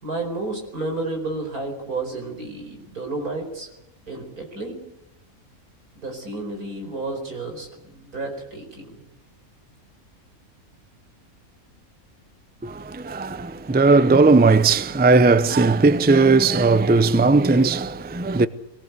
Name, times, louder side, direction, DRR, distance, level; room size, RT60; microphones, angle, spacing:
voice 1, 0.0-3.7 4.1-4.8 6.0-9.0, right 2 dB, 85° right, 5.3 m, -31 dB
voice 2, 12.6-18.5, right 3 dB, 10° right, 0.4 m, -17 dB
23.5 x 18.5 x 8.2 m
omnidirectional pair, 1.5 m